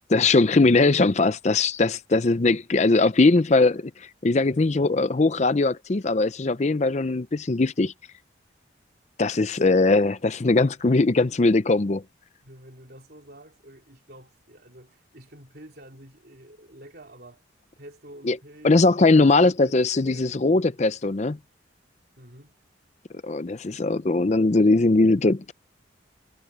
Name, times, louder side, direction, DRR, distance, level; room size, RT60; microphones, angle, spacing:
voice 1, 0.1-3.9 4.2-7.9 9.2-12.0 18.3-18.4 18.6-21.4 23.2-25.5, left 3 dB, 35° left, 0.5 m, -20 dB
voice 2, 12.4-17.4 17.8-18.8 19.2-21.0 22.2-22.5, right 1 dB, 55° right, 3.6 m, -48 dB
head